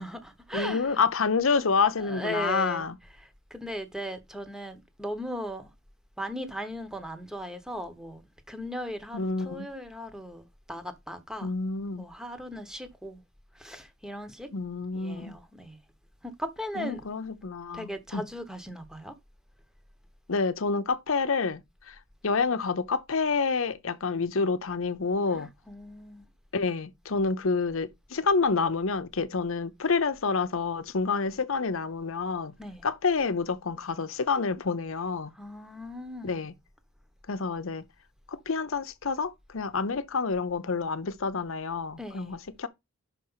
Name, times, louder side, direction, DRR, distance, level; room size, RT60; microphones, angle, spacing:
voice 1, 0.0-1.0 2.0-5.7 6.2-8.2 8.5-11.5 12.0-13.2 13.5-14.5 14.9-15.8 16.2-17.0 17.7-19.1 25.3-26.2 32.6-32.9 35.3-36.4 42.0-42.4, equal, 5° right, 1.0 m, -38 dB
voice 2, 0.5-3.0 9.1-9.7 11.4-12.1 14.5-15.4 16.8-18.2 20.3-21.6 21.9-22.0 22.2-25.5 26.5-32.6 32.8-35.3 36.2-36.5 37.3-37.8 38.3-42.7, left 4 dB, 70° left, 0.8 m, -28 dB
5.8 x 4.5 x 5.6 m
head